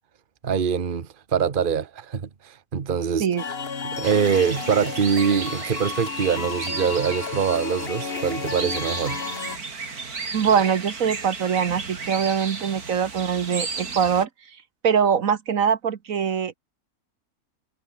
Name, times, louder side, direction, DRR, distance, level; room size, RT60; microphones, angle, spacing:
voice 1, 0.4-3.3 3.8-9.2, right 7 dB, 40° right, 1.3 m, -24 dB
sound 1, 3.4-9.6, left 5 dB, 45° left, 1.6 m, -32 dB
sound 2, 4.0-14.2, right 4 dB, 90° right, 3.3 m, -34 dB
voice 2, 10.3-14.6 14.8-16.5, right 7 dB, 65° right, 1.5 m, -23 dB
omnidirectional pair, 1.5 m